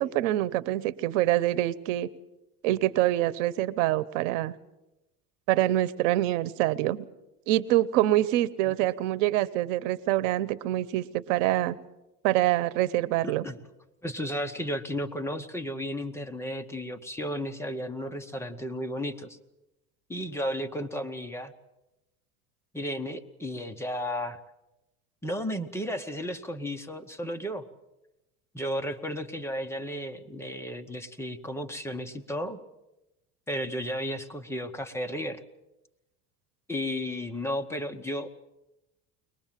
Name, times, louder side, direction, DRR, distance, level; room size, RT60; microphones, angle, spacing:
voice 1, 0.0-2.1 2.6-4.5 5.5-7.1 7.5-11.8 12.2-13.5, right 15 dB, 90° right, 17 dB, 1.0 m, -25 dB
voice 2, 13.2-13.6 14.0-19.4 20.1-21.5 22.7-24.4 25.2-27.6 28.5-32.6 33.5-35.4 36.7-38.3, equal, 5° left, 6 dB, 0.9 m, -33 dB
22.0 x 20.0 x 7.5 m, 0.94 s
cardioid pair, 145°, 37 cm